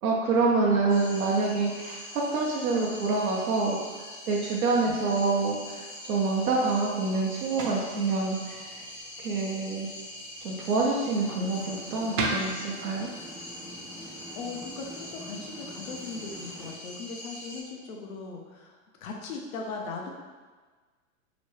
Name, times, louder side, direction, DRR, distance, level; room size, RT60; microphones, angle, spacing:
voice 1, 0.0-8.4 8.7-8.8 9.2-9.9 10.4-13.1, right 3 dB, 85° right, -2 dB, 0.7 m, -27 dB
sound 1, 0.9-17.6, left 1 dB, 30° left, 0.7 m, -43 dB
sound 2, 6.4-15.5, right 2 dB, 40° right, 0.6 m, -40 dB
sound 3, 11.0-16.7, equal, ahead, 0.4 m, -46 dB
voice 2, 14.0-20.1, left 4 dB, 75° left, 1 dB, 0.7 m, -39 dB
2.9 x 2.2 x 3.1 m, 1.4 s
hypercardioid pair, 120°, 42 cm